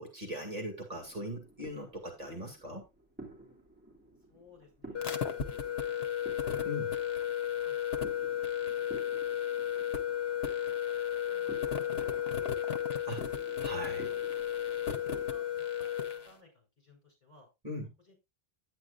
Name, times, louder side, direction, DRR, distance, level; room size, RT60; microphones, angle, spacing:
voice 1, 0.0-2.9 6.6-6.9 13.1-13.2 13.6-14.1 17.6-17.9, equal, 35° right, 2 dB, 2.2 m, -40 dB
sound 1, 0.9-15.4, right 2 dB, 10° right, 2.9 m, -52 dB
voice 2, 4.3-6.5 7.3-8.5 8.8-9.4 9.7-11.0 11.2-13.0 14.0-17.5 18.0-18.2, left 3 dB, 45° left, 0 dB, 5.7 m, -62 dB
sound 2, 4.9-16.3, left 10 dB, 75° left, 1.2 m, -33 dB
10.0 x 9.3 x 2.4 m, 0.23 s
omnidirectional pair, 1.1 m